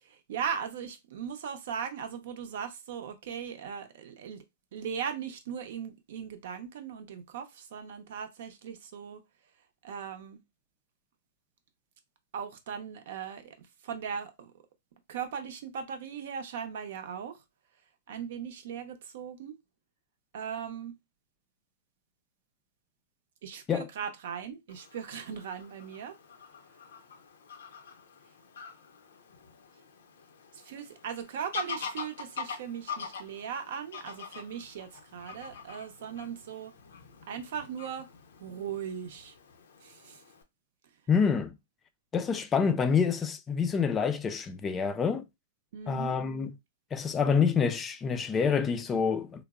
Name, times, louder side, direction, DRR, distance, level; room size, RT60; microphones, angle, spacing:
voice 1, 0.0-4.4 4.7-9.2 9.8-10.4 12.3-14.5 15.1-17.4 18.1-19.6 20.3-20.9 23.4-26.1 30.5-36.7 37.3-38.1 38.4-39.3 39.8-40.2 45.7-46.2, right 7 dB, 65° right, 0.6 m, -38 dB
Fowl / Bird vocalization bird call bird song, 24.7-40.4, left 5 dB, 75° left, 0.6 m, -45 dB
voice 2, 41.1-41.5 42.1-45.3 45.9-46.5 46.9-49.4, left 6 dB, 20° left, 0.3 m, -27 dB
3.3 x 2.0 x 2.4 m
hypercardioid pair, 120°, 0 cm